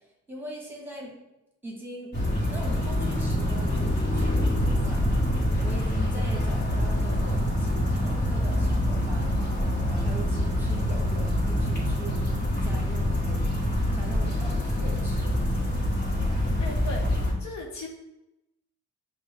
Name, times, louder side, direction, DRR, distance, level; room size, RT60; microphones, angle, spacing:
voice 1, 0.3-1.1 1.6-2.1 2.5-5.1 5.6-9.3 9.9-12.2 12.5-13.4 13.9-15.4, right 1 dB, 5° right, -2 dB, 1.3 m, -41 dB
sound 1, 2.1-17.3, left 1 dB, 35° left, 1.4 m, -25 dB
voice 2, 16.4-17.9, left 3 dB, 65° left, 1 dB, 0.9 m, -38 dB
5.7 x 2.2 x 3.4 m, 0.93 s
cardioid pair, 90°, 30 cm